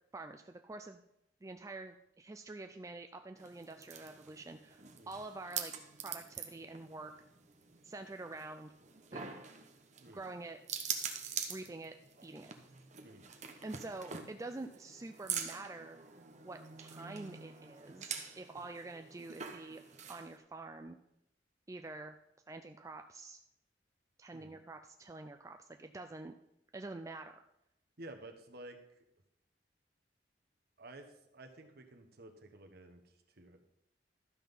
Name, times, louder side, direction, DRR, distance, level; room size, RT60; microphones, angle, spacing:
voice 1, 0.1-1.0 1.4-5.7 6.0-7.1 7.8-8.7 9.1-9.4 10.1-10.6 11.5-11.9 12.2-12.5 13.6-16.0 16.4-19.8 20.1-21.0 21.7-22.2 22.5-23.4 24.2-26.3 26.7-27.4, right 2 dB, 15° right, 6 dB, 0.4 m, -47 dB
sound 1, 3.4-20.4, right 7 dB, 40° right, 1.0 m, -45 dB
voice 2, 28.0-28.8 30.8-33.6, right 1 dB, 55° right, 5 dB, 1.3 m, -52 dB
12.5 x 6.0 x 5.4 m, 0.83 s
head